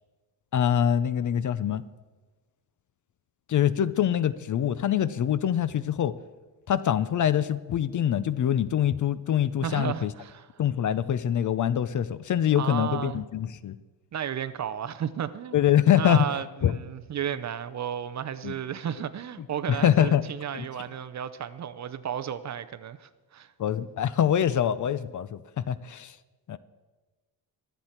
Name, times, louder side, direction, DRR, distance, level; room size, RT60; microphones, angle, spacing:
voice 1, 0.5-1.8 3.5-6.1 6.7-10.1 10.6-13.8 15.5-16.3 16.6-16.8 18.4-18.5 19.7-20.3 20.5-20.7 23.6-26.1 26.5-26.6, left 10 dB, 45° left, 0.5 m, -24 dB
voice 2, 9.6-10.5 12.5-13.3 14.1-15.6 15.9-23.5, right 9 dB, 40° right, 0.5 m, -33 dB
23.0 x 8.1 x 4.4 m
cardioid pair, 145°, 45 cm